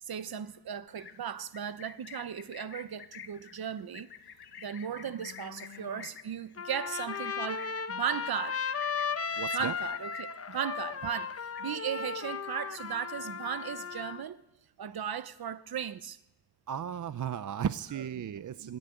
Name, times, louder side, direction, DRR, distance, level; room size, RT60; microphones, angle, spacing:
voice 1, 0.0-4.1 4.6-8.6 9.5-14.4 14.8-16.2 18.5-18.8, right 8 dB, 65° right, 1.0 m, -37 dB
Livestock farm animals working animals, 0.9-10.5 10.8-11.1 11.4-12.1 12.4-13.1, left 7 dB, 70° left, 1.5 m, -50 dB
Trumpet, 6.6-14.2, left 6 dB, 35° left, 0.9 m, -36 dB
voice 2, 9.4-9.7 16.7-18.8, right 8 dB, 50° right, 0.6 m, -35 dB
21.0 x 13.5 x 9.1 m
wide cardioid pair, 105°, 41 cm